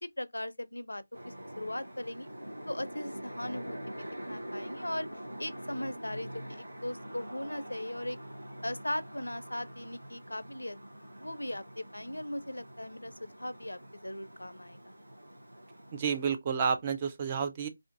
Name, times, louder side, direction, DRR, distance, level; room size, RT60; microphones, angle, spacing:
voice 1, 0.2-2.3 2.7-5.1 5.4-8.2 8.6-10.8 11.2-14.9, left 1 dB, 85° left, 0.4 m, -39 dB
sound 1, 1.1-16.3, equal, 80° right, 0.9 m, -45 dB
voice 2, 15.9-17.7, right 6 dB, 25° right, 0.3 m, -30 dB
2.5 x 2.4 x 2.5 m
figure-of-eight pair, 160°, 0 cm